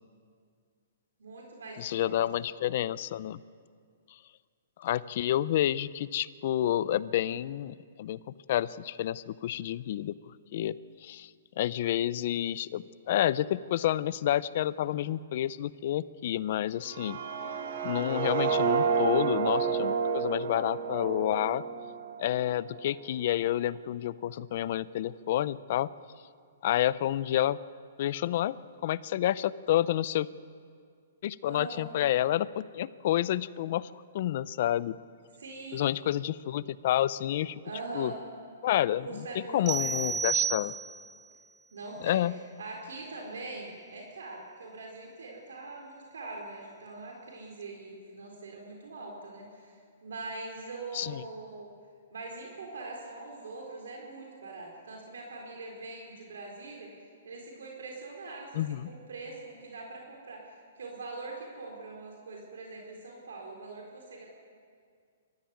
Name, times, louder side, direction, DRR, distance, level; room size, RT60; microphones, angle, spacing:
voice 1, 1.2-2.4 31.4-31.8 35.4-35.9 37.6-38.2 39.0-40.1 41.7-42.2 42.6-51.7 52.1-56.9 57.2-64.3, right 3 dB, 85° right, 0 dB, 4.0 m, -43 dB
voice 2, 1.8-3.4 4.8-8.2 8.5-10.1 10.5-10.8 11.0-11.3 11.6-17.2 17.8-21.6 22.2-25.9 26.6-27.6 28.0-28.6 28.8-30.3 31.2-35.0 35.7-37.6 37.9-38.1 38.6-40.7 42.0-42.4 50.9-51.2 58.5-58.9, left 12 dB, 50° left, 19 dB, 0.6 m, -29 dB
sound 1, 16.8-22.8, right 6 dB, 55° right, 2.4 m, -30 dB
sound 2, 39.7-41.2, right 6 dB, 20° right, 0.8 m, -31 dB
23.0 x 14.5 x 9.3 m, 2.2 s
hypercardioid pair, 155°, 0 cm